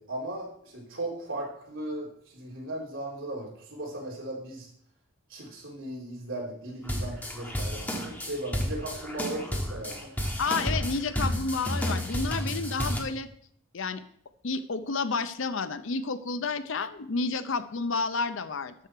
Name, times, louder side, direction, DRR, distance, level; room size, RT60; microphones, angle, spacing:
voice 1, 0.0-4.7 5.3-10.1, right 1 dB, 65° right, -2 dB, 3.4 m, -37 dB
sound 1, 6.8-13.0, equal, 10° left, 1.3 m, -31 dB
voice 2, 10.4-13.3 13.7-14.0 14.4-18.7, left 4 dB, 60° left, 12 dB, 0.6 m, -30 dB
12.5 x 6.4 x 4.5 m, 0.64 s
head